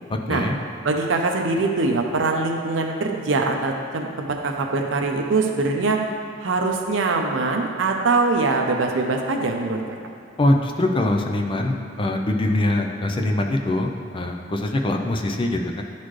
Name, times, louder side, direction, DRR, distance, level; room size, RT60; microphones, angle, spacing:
voice 1, 0.1-0.6 10.4-15.8, left 1 dB, 25° left, 3 dB, 0.5 m, -23 dB
voice 2, 0.8-6.0 6.4-9.8, right 3 dB, 75° right, 2 dB, 0.6 m, -23 dB
11.5 x 4.1 x 3.2 m, 2.5 s
head